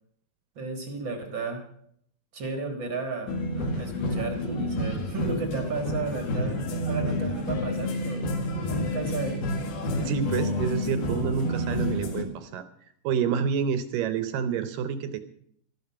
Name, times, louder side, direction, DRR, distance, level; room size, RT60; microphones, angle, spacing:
voice 1, 0.5-1.6 2.3-9.4, right 4 dB, 60° right, 4 dB, 1.2 m, -34 dB
sound 1, 3.3-12.2, left 1 dB, 70° left, 3.5 m, -29 dB
voice 2, 9.9-15.2, right 7 dB, 75° right, 11 dB, 2.0 m, -28 dB
13.5 x 12.5 x 5.7 m, 0.68 s
omnidirectional pair, 4.6 m